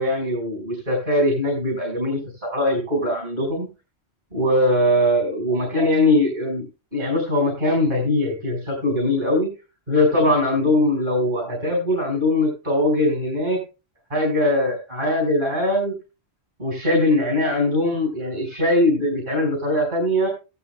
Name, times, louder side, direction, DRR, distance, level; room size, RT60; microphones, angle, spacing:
voice 1, 0.0-3.7 4.3-6.6 6.9-9.5 9.9-13.6 14.1-15.9 16.6-20.3, left 1 dB, 50° right, 0 dB, 5.3 m, -21 dB
15.5 x 12.5 x 2.2 m, 0.31 s
omnidirectional pair, 1.1 m